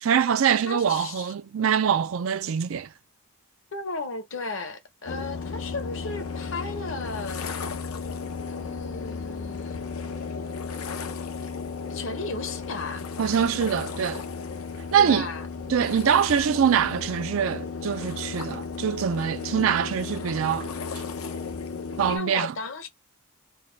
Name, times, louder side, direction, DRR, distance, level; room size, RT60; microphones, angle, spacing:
voice 1, 0.0-2.9 13.2-14.2 14.9-15.3 15.7-20.7 22.0-22.5, right 8 dB, 70° right, 0.4 m, -24 dB
voice 2, 0.6-1.3 3.7-7.4 8.5-9.8 11.4-11.5 11.9-13.0 15.0-15.5 22.1-22.9, left 3 dB, 60° left, 0.9 m, -35 dB
sound 1, 5.1-22.2, left 5 dB, 85° left, 0.7 m, -34 dB
4.0 x 2.2 x 3.3 m
head